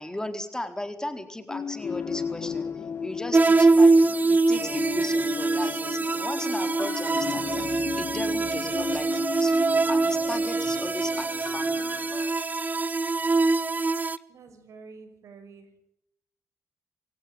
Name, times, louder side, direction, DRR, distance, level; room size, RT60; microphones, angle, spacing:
voice 1, 0.0-11.9, left 1 dB, 10° left, 7 dB, 4.2 m, -36 dB
sound 1, 1.5-12.3, left 6 dB, 50° left, 1.5 m, -35 dB
sound 2, 3.3-14.2, right 3 dB, 30° right, 1.2 m, -23 dB
voice 2, 14.3-15.7, right 4 dB, 70° right, 10 dB, 5.9 m, -48 dB
26.5 x 17.5 x 9.9 m, 0.79 s
supercardioid pair, 65°, 6 cm